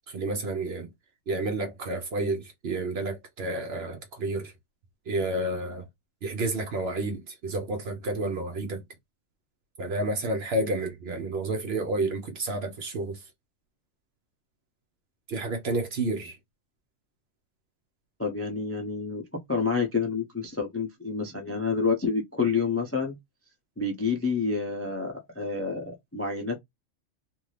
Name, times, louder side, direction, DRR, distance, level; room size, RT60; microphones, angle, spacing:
voice 1, 0.1-0.9 1.3-4.5 5.1-5.8 6.2-8.8 9.8-13.2 15.3-16.4, right 2 dB, 55° right, 0.8 m, -30 dB
voice 2, 18.2-19.2 19.5-23.2 23.8-26.6, left 4 dB, 15° left, 0.4 m, -28 dB
2.6 x 2.6 x 3.2 m
omnidirectional pair, 1.4 m